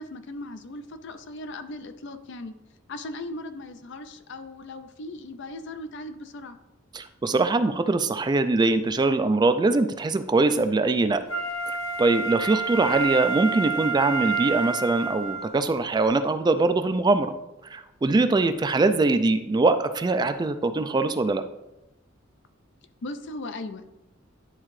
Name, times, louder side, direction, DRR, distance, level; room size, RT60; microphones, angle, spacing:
voice 1, 0.0-2.5 2.9-6.6 23.0-23.9, left 2 dB, 60° left, 9 dB, 0.5 m, -38 dB
voice 2, 6.9-11.2 11.7-17.3 17.7-21.4, right 3 dB, 20° right, 10 dB, 0.3 m, -22 dB
Wind instrument woodwind instrument, 11.3-15.6 16.1-16.2, right 4 dB, 85° left, 0.9 m, -29 dB
10.5 x 3.6 x 3.2 m, 0.92 s
head